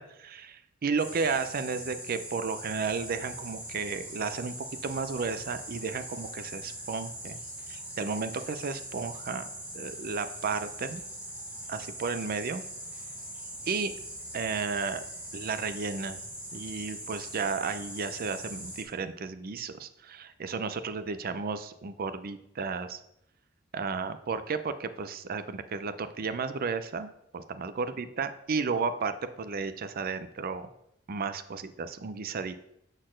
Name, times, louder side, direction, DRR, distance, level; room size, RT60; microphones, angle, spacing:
voice 1, 0.0-4.5 4.8-7.4 7.7-9.5 9.7-11.0 11.7-12.6 13.7-13.9 14.3-15.0 15.3-16.2 16.5-23.0 23.7-30.7 31.1-32.7, right 5 dB, 45° right, 11 dB, 0.5 m, -33 dB
sound 1, 1.0-18.8, right 1 dB, 5° right, 1.3 m, -42 dB
6.4 x 4.0 x 6.3 m, 0.80 s
head